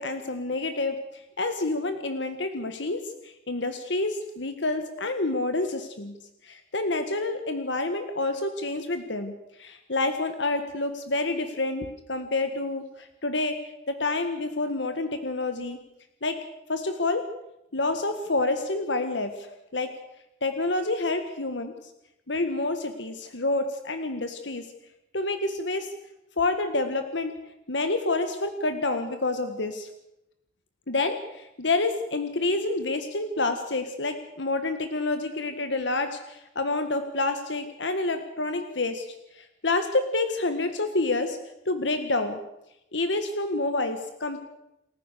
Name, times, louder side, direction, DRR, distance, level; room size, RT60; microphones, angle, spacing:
voice 1, 0.0-6.1 6.4-9.3 9.6-15.8 16.2-16.4 16.7-17.2 17.7-19.9 20.4-21.9 22.3-24.7 25.1-25.9 26.4-27.3 27.7-29.9 30.9-39.1 39.3-41.4 41.6-42.4 42.9-44.4, left 2 dB, 90° left, 8 dB, 1.7 m, -28 dB
28.5 x 14.5 x 6.8 m, 0.87 s
head